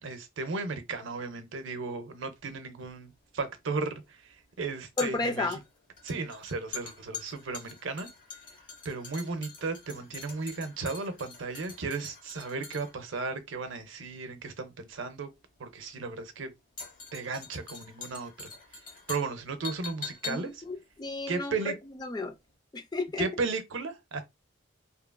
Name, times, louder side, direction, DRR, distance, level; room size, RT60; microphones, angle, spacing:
voice 1, 0.0-5.6 6.0-8.1 8.8-15.3 15.6-16.5 17.1-18.5 19.1-20.6 21.3-21.7 23.2-24.2, right 4 dB, 75° right, 0.6 m, -35 dB
sound 1, 2.8-22.1 22.4-22.5, left 5 dB, 40° left, 0.9 m, -45 dB
voice 2, 5.0-5.6 20.2-21.7 22.0-22.3 22.7-23.3, left 3 dB, 20° left, 0.3 m, -33 dB
2.9 x 2.4 x 2.2 m
head